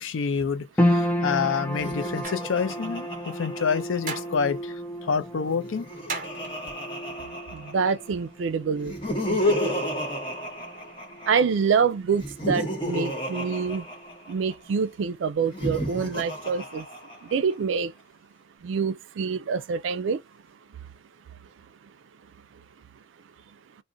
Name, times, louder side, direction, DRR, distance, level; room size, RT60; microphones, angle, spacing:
voice 1, 0.0-4.7 5.0-5.9, left 6 dB, 85° left, 0.4 m, -27 dB
sound 1, 0.8-13.2 13.4-14.4 14.8-14.9, left 1 dB, 10° left, 0.3 m, -32 dB
Laughter, 1.7-4.4 5.5-8.1 8.8-11.5 12.1-14.5 15.4-17.5, left 1 dB, 25° left, 1.0 m, -32 dB
sound 2, 2.2-2.6 4.1-4.4 6.1-6.7, right 5 dB, 40° right, 0.7 m, -35 dB
voice 2, 7.5-8.9 9.2-9.8 11.3-13.9 14.3-16.9 17.2-17.9 18.6-20.2, right 5 dB, 75° right, 0.3 m, -26 dB
2.4 x 2.1 x 3.7 m
head